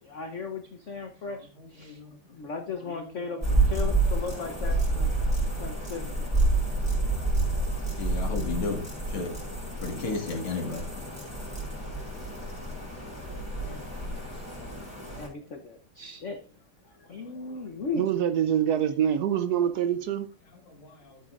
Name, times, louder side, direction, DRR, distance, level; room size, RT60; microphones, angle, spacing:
voice 1, 0.0-2.0 2.3-5.1 5.6-6.6 13.6-14.6 15.1-16.4 16.8-18.0, left 4 dB, 50° left, 0.9 m, -37 dB
voice 2, 1.6-2.2 2.9-3.0 3.9-4.0 6.5-6.6 7.1-7.4 8.0-8.8 9.1-9.3 9.8-10.8 14.0-14.1 20.7-21.2, left 3 dB, 80° left, 2.8 m, -34 dB
sound 1, 3.4-15.3, right 2 dB, 5° right, 5.0 m, -29 dB
voice 3, 18.0-20.3, right 9 dB, 75° right, 0.9 m, -25 dB
13.5 x 8.2 x 2.5 m
omnidirectional pair, 2.3 m